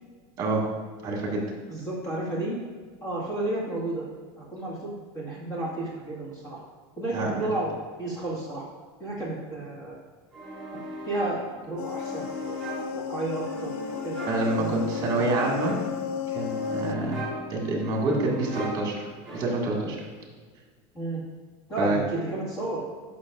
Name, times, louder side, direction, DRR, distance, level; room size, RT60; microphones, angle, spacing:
voice 1, 1.0-1.4 7.1-7.5 14.3-15.7 16.3-17.2 17.5-20.0 21.8-22.0, right 2 dB, 30° right, -1 dB, 1.9 m, -27 dB
voice 2, 1.7-2.6 3.0-4.1 4.4-6.6 7.0-7.7 8.0-8.6 9.0-10.0 10.7-10.8 11.1-11.4 11.7-13.7 14.0-14.3 14.6-14.8 15.1-15.3 20.9-21.2 21.7-22.8, right 2 dB, 20° left, -5 dB, 1.9 m, -32 dB
sound 1, 10.3-19.8, equal, ahead, 1.6 m, -39 dB
sound 2, 11.8-17.0, left 6 dB, 40° left, 0.4 m, -33 dB
11.5 x 6.0 x 2.5 m, 1.5 s
supercardioid pair, 170°, 14 cm